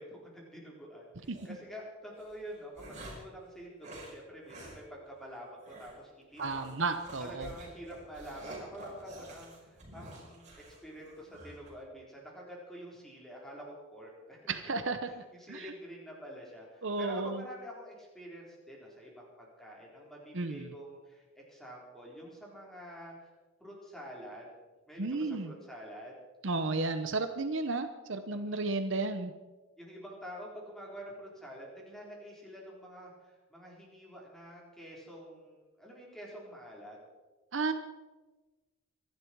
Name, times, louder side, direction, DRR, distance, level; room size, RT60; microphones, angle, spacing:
voice 1, 0.0-5.5 5.8-6.8 7.2-14.5 15.1-23.3 23.6-24.5 24.9-26.1 28.3-28.7 29.8-37.0, equal, ahead, -3 dB, 4.5 m, -47 dB
sound 1, 1.2-1.5 2.2-3.3 3.8-4.1 4.5-4.8 5.1-5.2 5.6-6.0 6.4-11.7, right 1 dB, 35° right, 5.2 m, -48 dB
voice 2, 6.4-7.5 14.5-15.1 15.5-15.6 16.8-17.4 20.3-20.7 25.0-25.5 26.4-29.3 37.5-37.7, right 3 dB, 60° right, 9 dB, 0.9 m, -33 dB
25.5 x 11.5 x 4.7 m, 1.2 s
head